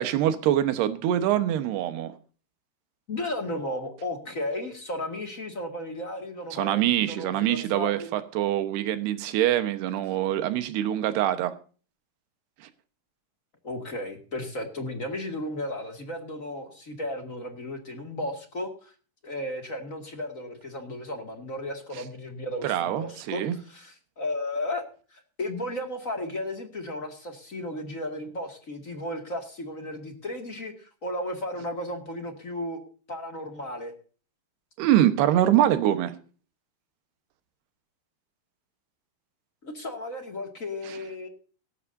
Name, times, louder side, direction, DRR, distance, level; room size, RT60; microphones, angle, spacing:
voice 1, 0.0-2.1 6.5-11.6 12.6-12.7 22.6-23.6 34.8-36.2 40.9-41.0, right 12 dB, 85° right, 3.2 m, -24 dB
voice 2, 3.1-8.1 13.6-18.9 19.2-24.8 25.1-32.8 33.1-33.9 39.6-41.3, left 1 dB, 30° left, 1.6 m, -34 dB
17.5 x 14.5 x 2.7 m
omnidirectional pair, 4.6 m